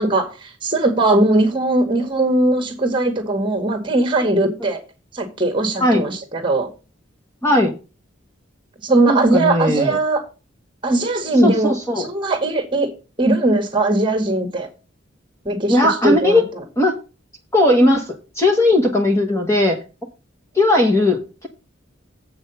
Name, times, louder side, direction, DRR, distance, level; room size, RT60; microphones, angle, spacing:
voice 1, 0.0-4.8 5.1-6.7 8.8-10.2 10.8-12.9 13.2-14.7 15.5-15.8 16.0-16.4, right 2 dB, 25° right, 2.0 m, -19 dB
voice 2, 7.4-7.7 9.1-10.0 11.4-12.1 15.7-16.4 16.8-16.9 17.5-19.8 20.5-21.5, left 1 dB, 15° left, 1.4 m, -17 dB
8.1 x 6.1 x 5.7 m
head